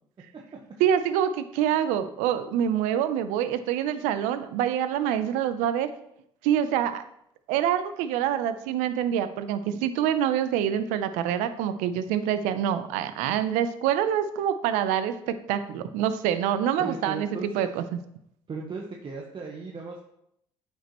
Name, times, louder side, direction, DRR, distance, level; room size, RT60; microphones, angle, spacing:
voice 1, 0.8-5.9 6.4-7.0 7.5-17.8, right 9 dB, 80° right, 11 dB, 0.6 m, -26 dB
voice 2, 16.8-17.7 18.5-20.0, right 4 dB, 40° right, 0 dB, 1.1 m, -36 dB
8.7 x 5.2 x 3.0 m, 0.75 s
supercardioid pair, 65°, 13 cm